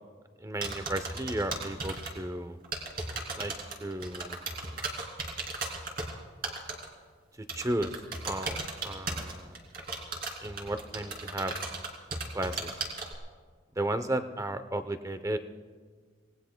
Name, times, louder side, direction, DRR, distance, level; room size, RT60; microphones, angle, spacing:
voice 1, 0.4-2.6 3.3-3.5 3.8-4.4 7.5-8.6 8.8-9.6 10.4-11.5 12.3-12.7 13.8-15.4, right 1 dB, 15° right, 10 dB, 0.7 m, -34 dB
sound 1, 0.6-2.1 2.6-6.1 6.4-6.8 7.5-13.1, right 3 dB, 50° right, 3.0 m, -35 dB
26.5 x 18.5 x 2.2 m, 1.5 s
head